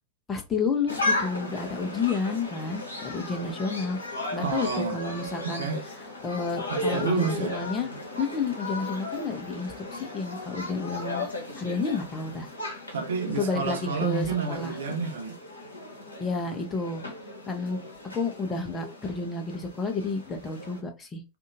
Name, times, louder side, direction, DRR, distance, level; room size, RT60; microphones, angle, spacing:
voice 1, 0.3-5.6 6.2-7.9 8.2-11.2 11.6-12.5 13.4-14.8 16.2-17.0 17.5-17.8 18.1-21.2, left 4 dB, 20° left, 0.7 m, -31 dB
sound 1, 0.9-20.8, left 2 dB, 75° left, 0.8 m, -36 dB
voice 2, 4.3-5.0 5.4-5.8 6.7-7.5 12.9-15.4, right 5 dB, 65° right, 0.5 m, -29 dB
2.6 x 2.5 x 2.8 m
figure-of-eight pair, 90°, 0 cm